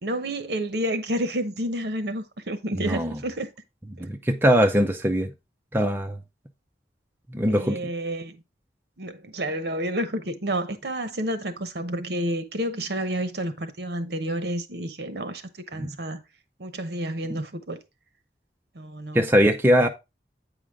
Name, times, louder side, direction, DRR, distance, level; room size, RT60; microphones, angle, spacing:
voice 1, 0.0-3.5 7.5-8.4 9.0-15.4 15.7-16.2 16.6-17.8 18.7-19.3, right 1 dB, 70° right, 0.9 m, -30 dB
voice 2, 2.8-3.2 4.0-5.3 5.7-6.2 7.3-7.8 15.8-15.9 19.1-19.9, equal, 10° right, 0.5 m, -21 dB
8.4 x 5.0 x 3.5 m
head